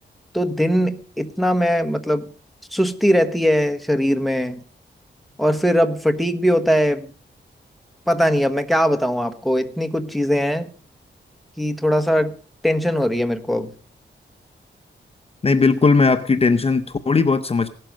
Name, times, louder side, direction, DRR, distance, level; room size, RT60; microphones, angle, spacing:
voice 1, 0.3-2.3 2.7-4.6 5.4-7.1 8.1-10.7 11.6-12.3 12.6-13.7, equal, ahead, 7 dB, 1.2 m, -20 dB
voice 2, 15.4-17.7, left 4 dB, 30° left, 10 dB, 0.8 m, -17 dB
16.5 x 12.0 x 5.2 m, 0.39 s
wide cardioid pair, 155°, 19 cm